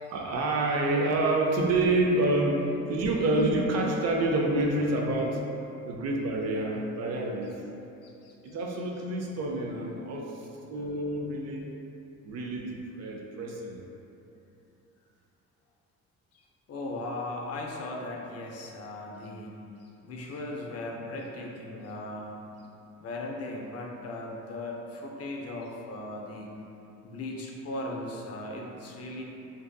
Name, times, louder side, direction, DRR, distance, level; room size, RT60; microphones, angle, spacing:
voice 1, 0.1-5.4 5.8-7.6 8.4-11.7 12.2-13.8, right 2 dB, 60° right, 0 dB, 0.4 m, -28 dB
voice 2, 8.0-8.5 16.7-19.7 20.0-22.4 23.0-26.5 27.0-29.2, left 2 dB, 55° left, -1 dB, 0.4 m, -38 dB
2.6 x 2.5 x 2.2 m, 2.8 s
cardioid pair, 90°, 30 cm